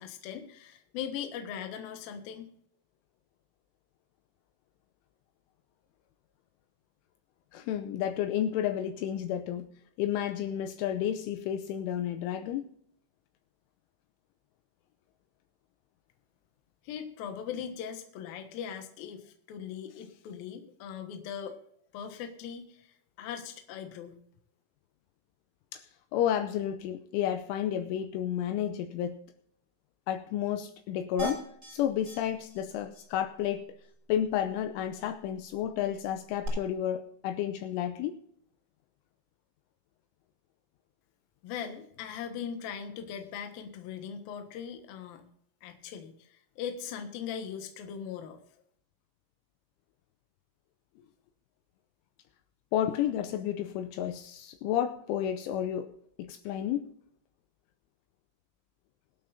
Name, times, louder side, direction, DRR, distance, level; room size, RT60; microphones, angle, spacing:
voice 1, 0.0-2.4 16.8-21.6 21.9-24.2 41.4-45.3 45.6-48.4, left 8 dB, 65° left, 2.5 m, -40 dB
voice 2, 7.5-9.7 10.0-12.7 25.7-25.8 26.1-29.2 30.1-33.7 34.1-38.2 52.7-55.9 56.2-56.9, left 10 dB, 80° left, 3.0 m, -31 dB
sound 1, 31.2-31.7 32.1-32.2 32.5-32.6 32.9-33.1 36.4-36.5, right 4 dB, 20° right, 3.0 m, -37 dB
24.0 x 8.4 x 2.7 m
omnidirectional pair, 5.8 m